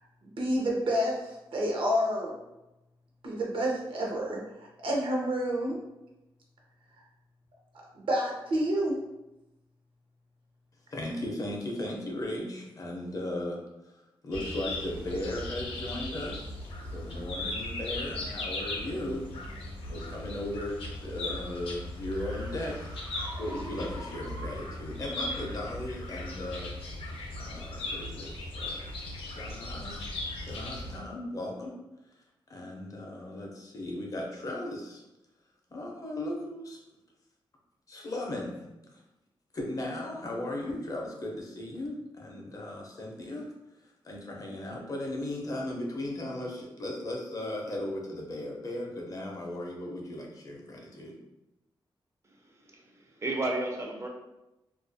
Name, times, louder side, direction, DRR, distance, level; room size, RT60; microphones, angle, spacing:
voice 1, 0.2-2.3 3.2-4.4 4.8-5.8 7.9-8.9, equal, 70° right, -2 dB, 0.7 m, -29 dB
voice 2, 10.9-16.6 16.9-19.3 19.9-22.9 23.4-26.7 27.4-30.1 30.4-31.8 32.5-35.0 35.7-36.8 37.9-38.6 38.9-39.0 39.5-43.5 43.8-51.1, left 1 dB, 40° left, -1 dB, 0.5 m, -37 dB
sound 1, 14.3-31.0, left 2 dB, 90° left, 0.5 m, -38 dB
sound 2, 20.8-24.9, equal, 90° right, 1.1 m, -47 dB
voice 3, 52.2-54.1, right 2 dB, 30° right, 1 dB, 0.4 m, -34 dB
2.3 x 2.1 x 2.5 m, 0.95 s
wide cardioid pair, 125°, 9 cm